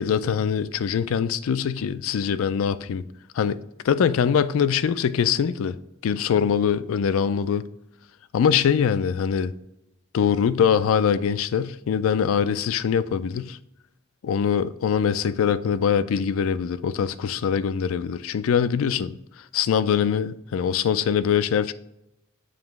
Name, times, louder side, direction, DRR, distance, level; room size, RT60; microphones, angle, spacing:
voice 1, 0.0-3.0 3.3-3.6 3.8-5.8 6.0-7.7 8.3-9.5 10.1-13.6 14.2-19.2 19.5-21.7, left 7 dB, 70° left, 0.3 m, -23 dB
7.3 x 2.9 x 4.6 m
head